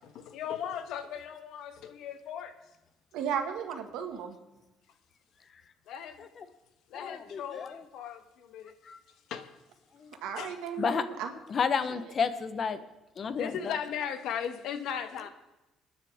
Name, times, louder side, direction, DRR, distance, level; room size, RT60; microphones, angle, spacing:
voice 1, 0.0-2.6 5.9-6.3 6.9-8.7 9.3-9.5 10.4-10.9 13.4-15.3, left 8 dB, 70° left, 9 dB, 1.3 m, -37 dB
voice 2, 3.1-4.4 10.2-11.3 11.9-12.1, right 7 dB, 85° right, 5 dB, 1.8 m, -35 dB
voice 3, 6.9-7.7 8.9-9.0 10.0-10.1 10.8-11.0 11.5-12.8 13.2-13.5, left 6 dB, 40° left, 12 dB, 0.9 m, -30 dB
26.5 x 9.9 x 3.6 m, 1.0 s
cardioid pair, 130°, 0 cm